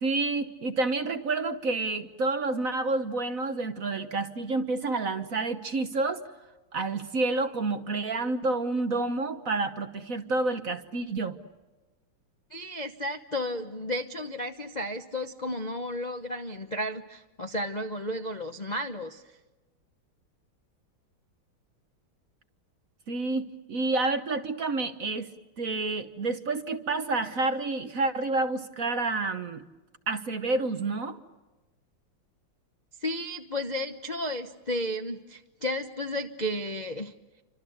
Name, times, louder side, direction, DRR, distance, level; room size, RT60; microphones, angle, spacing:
voice 1, 0.0-6.2 6.7-11.4 23.1-25.3 25.6-29.6 30.1-31.2, right 3 dB, 50° right, 9 dB, 1.3 m, -29 dB
voice 2, 12.5-19.2 33.0-37.1, left 1 dB, 35° left, 5 dB, 0.7 m, -33 dB
28.5 x 25.5 x 8.0 m, 1.2 s
omnidirectional pair, 2.3 m